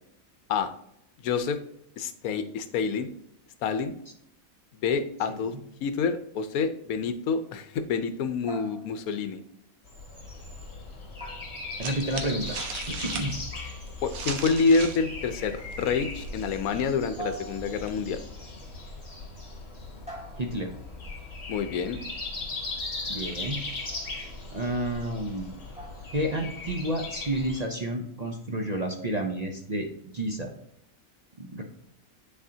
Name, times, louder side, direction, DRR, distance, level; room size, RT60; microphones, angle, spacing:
voice 1, 1.2-1.6 2.0-3.1 3.6-3.9 4.8-5.5 5.8-9.4 14.0-18.2 21.5-22.1, left 5 dB, 85° left, 10 dB, 1.1 m, -27 dB
sound 1, 8.5-9.2 11.2-12.1 13.5-14.1 15.6-16.0 17.2-18.1 20.1-20.9 23.8-24.2 25.7-26.3, right 3 dB, 5° right, 1.7 m, -44 dB
Breathing, 9.9-27.6, left 3 dB, 50° left, 2.1 m, -39 dB
voice 2, 11.8-12.6 12.9-13.4 20.4-20.7 23.1-23.6 24.5-25.5 26.1-30.5 31.4-31.6, right 1 dB, 40° right, 2 dB, 0.6 m, -30 dB
sound 2, 11.8-15.1 15.3-17.9, right 5 dB, 80° right, 1.3 m, -39 dB
10.0 x 4.2 x 2.7 m, 0.74 s
omnidirectional pair, 1.5 m